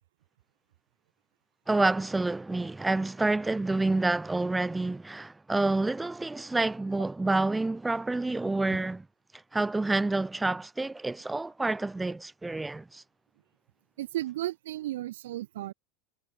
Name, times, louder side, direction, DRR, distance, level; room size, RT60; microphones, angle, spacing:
voice 1, 1.7-9.1 9.5-13.0, right 2 dB, 10° right, 5.4 m, -28 dB
voice 2, 14.0-15.7, right 14 dB, 70° right, 5.6 m, -34 dB
hypercardioid pair, 85°, 0 cm